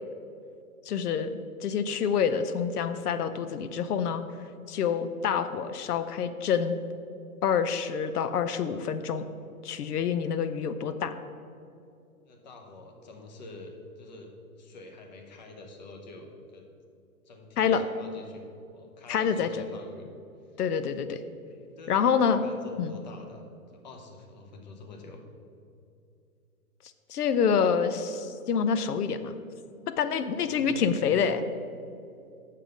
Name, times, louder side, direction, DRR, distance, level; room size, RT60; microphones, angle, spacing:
voice 1, 0.9-4.2 4.7-6.8 7.4-9.2 9.6-11.1 17.6-17.8 19.1-19.6 20.6-21.2 21.9-22.4 22.8-23.0 27.1-29.3 30.0-31.4, left 7 dB, 85° left, 11 dB, 0.7 m, -27 dB
voice 2, 12.2-16.7 17.3-20.1 21.8-25.2 30.3-31.0, left 2 dB, 30° left, 4 dB, 0.8 m, -47 dB
7.5 x 6.7 x 5.1 m, 2.5 s
hypercardioid pair, 170°, 45 cm